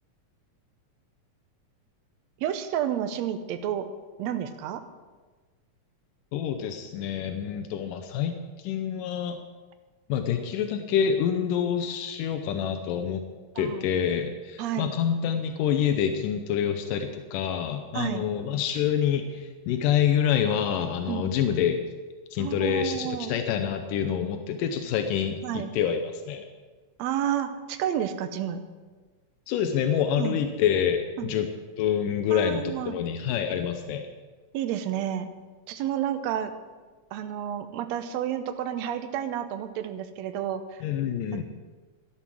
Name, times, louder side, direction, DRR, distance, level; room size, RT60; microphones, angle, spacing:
voice 1, 2.4-3.9 4.2-4.8 13.6-13.9 14.6-14.9 17.9-18.3 21.1-21.3 22.4-23.3 25.4-25.7 27.0-28.6 30.2-30.4 31.2-31.3 32.3-33.0 34.5-35.3 35.7-36.5 37.1-40.8, right 10 dB, 70° right, 9 dB, 1.8 m, -30 dB
voice 2, 6.3-8.4 8.6-9.4 10.1-13.2 13.6-21.8 22.3-26.4 29.5-31.5 31.8-34.1 40.8-41.4, left 8 dB, 90° left, 7 dB, 2.4 m, -27 dB
12.5 x 11.5 x 6.2 m, 1.3 s
omnidirectional pair, 3.7 m